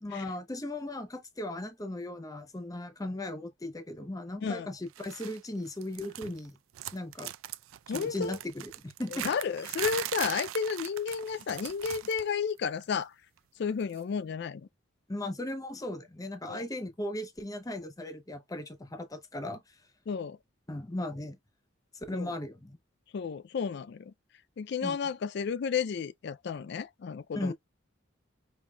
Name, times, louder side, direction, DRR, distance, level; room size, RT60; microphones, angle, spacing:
voice 1, 0.0-6.6 6.9-7.3 7.9-9.3 15.1-19.6 20.7-21.4 22.1-22.8 24.8-25.0 27.3-27.5, left 1 dB, 15° left, 0.7 m, -37 dB
sound 1, 5.0-5.4 5.7-6.5 6.7-12.3 12.6-12.8 13.9-14.0, right 13 dB, 80° right, 0.4 m, -40 dB
voice 2, 7.9-8.4 9.1-13.1 13.6-14.6 16.5-16.6 20.1-20.4 22.1-22.3 23.1-24.1 24.6-27.5, left 6 dB, 55° left, 0.3 m, -32 dB
5.4 x 2.7 x 2.2 m
head